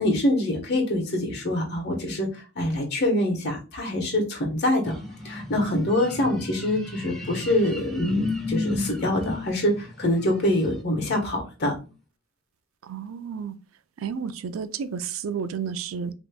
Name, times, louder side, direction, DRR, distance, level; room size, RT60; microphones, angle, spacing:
voice 1, 0.0-2.3 2.5-5.0 5.2-11.7, left 1 dB, 55° left, 1.3 m, -25 dB
sound 1, 4.8-10.8, left 2 dB, ahead, 0.8 m, -32 dB
voice 2, 12.9-13.6 14.0-16.1, right 6 dB, 85° right, 0.4 m, -31 dB
5.2 x 3.0 x 2.2 m
head